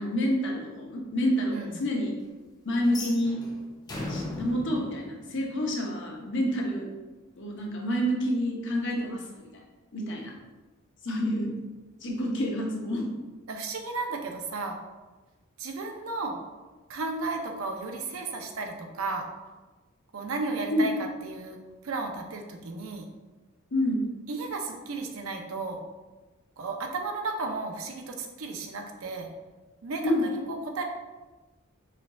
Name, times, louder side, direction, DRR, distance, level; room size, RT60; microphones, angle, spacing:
voice 1, 0.0-2.1 2.6-3.4 4.1-6.9 7.4-9.6 9.9-10.3 11.0-11.6 12.0-13.1 20.7-20.8 23.7-24.0 30.0-30.3, equal, 60° left, -1 dB, 0.8 m, -28 dB
sound 1, 2.8-5.9, left 2 dB, 20° left, 0.5 m, -38 dB
voice 2, 13.5-14.8 15.6-16.4 16.9-19.3 20.1-20.9 21.2-21.6 21.8-23.1 24.3-25.8 26.6-29.3 29.8-30.8, right 3 dB, 80° right, 3 dB, 0.6 m, -34 dB
4.5 x 3.5 x 2.3 m, 1.2 s
head